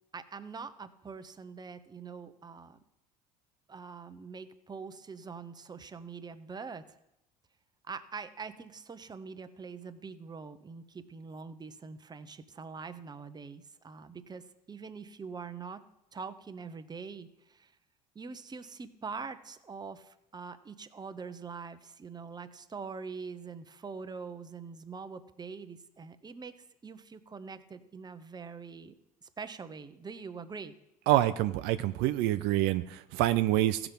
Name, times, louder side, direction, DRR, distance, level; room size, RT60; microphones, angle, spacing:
voice 1, 0.1-2.8 3.7-6.8 7.9-15.8 16.1-17.7 18.1-28.9 29.2-30.7, right 5 dB, 20° right, 10 dB, 0.9 m, -44 dB
voice 2, 31.1-33.9, right 14 dB, 65° right, 11 dB, 0.5 m, -27 dB
15.5 x 6.0 x 5.2 m, 0.84 s
hypercardioid pair, 75°, 19 cm